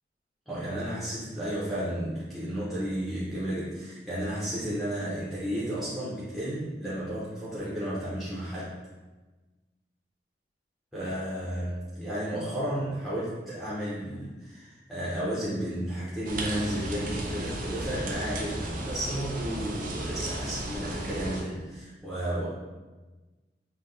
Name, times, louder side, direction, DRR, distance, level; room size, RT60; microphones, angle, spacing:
voice 1, 0.5-8.8 10.9-22.5, right 1 dB, ahead, -10 dB, 0.7 m, -33 dB
sound 1, 16.2-21.4, right 1 dB, 50° right, 0.5 m, -34 dB
5.5 x 2.3 x 2.6 m, 1.2 s
head